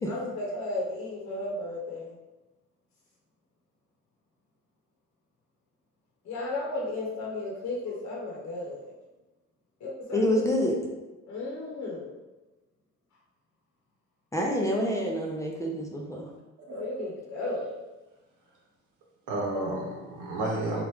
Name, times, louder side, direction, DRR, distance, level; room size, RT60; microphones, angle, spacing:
voice 1, 0.0-2.2 6.2-8.9 9.8-10.6 11.2-12.2 16.7-17.7, left 2 dB, 65° left, -4 dB, 0.8 m, -34 dB
voice 2, 10.1-10.7 14.3-16.3, equal, 10° left, -2 dB, 0.5 m, -27 dB
voice 3, 16.7-17.1 17.4-17.6 19.3-20.8, right 2 dB, 90° right, -1 dB, 0.9 m, -32 dB
3.0 x 2.4 x 3.4 m, 1.0 s
cardioid pair, 90°, 30 cm